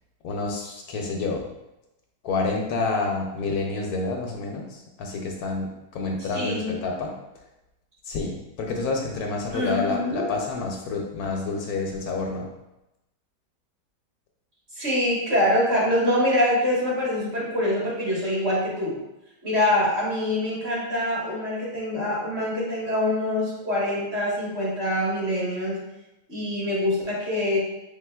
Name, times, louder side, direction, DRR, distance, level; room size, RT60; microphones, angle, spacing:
voice 1, 0.2-1.4 2.2-7.1 8.0-12.5, left 3 dB, 75° left, 1 dB, 1.0 m, -28 dB
voice 2, 6.3-6.7 9.5-10.3 14.7-19.0 19.4-25.8 26.3-27.6, left 1 dB, 40° right, -6 dB, 1.5 m, -24 dB
4.8 x 3.5 x 2.2 m, 0.94 s
omnidirectional pair, 1.7 m